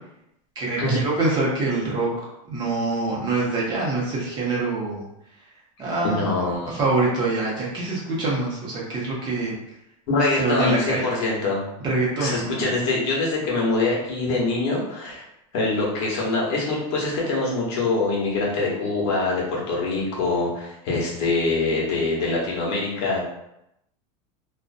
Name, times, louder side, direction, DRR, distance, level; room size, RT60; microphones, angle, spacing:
voice 1, 0.6-2.1 2.5-5.0 5.8-9.5 10.4-11.1 11.8-12.7, right 2 dB, 25° right, -5 dB, 0.5 m, -25 dB
voice 2, 6.0-6.8 10.1-11.6 12.2-15.2 15.5-23.2, left 3 dB, 55° left, -4 dB, 0.9 m, -24 dB
2.5 x 2.0 x 2.4 m, 0.82 s
supercardioid pair, 165°, 18 cm